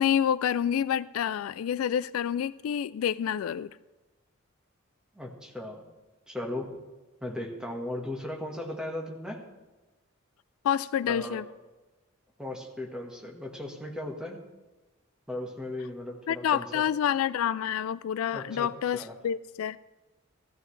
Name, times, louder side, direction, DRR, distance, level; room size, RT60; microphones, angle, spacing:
voice 1, 0.0-3.7 10.6-11.4 16.3-19.8, left 9 dB, 85° left, 0.3 m, -28 dB
voice 2, 5.1-5.8 6.3-6.7 7.2-9.4 11.1-11.4 12.4-14.4 15.3-16.9 18.3-19.2, left 1 dB, 5° right, 1.5 m, -37 dB
15.5 x 13.5 x 3.3 m
head